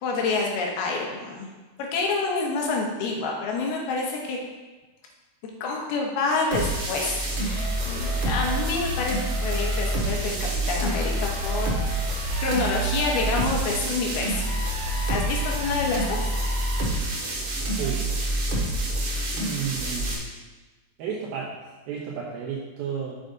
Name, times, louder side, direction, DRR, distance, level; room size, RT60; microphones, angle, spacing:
voice 1, 0.0-1.5 1.8-4.4 5.6-10.4 10.7-11.7 12.4-14.5 15.1-16.3, left 3 dB, 85° left, -1 dB, 3.2 m, -27 dB
sound 1, 6.5-20.1, right 1 dB, 60° right, 2.6 m, -27 dB
voice 2, 17.8-18.2 19.3-20.3 21.0-21.6 21.9-23.3, right 7 dB, 80° right, -5 dB, 2.8 m, -32 dB
7.2 x 6.5 x 3.9 m, 1.3 s
omnidirectional pair, 4.4 m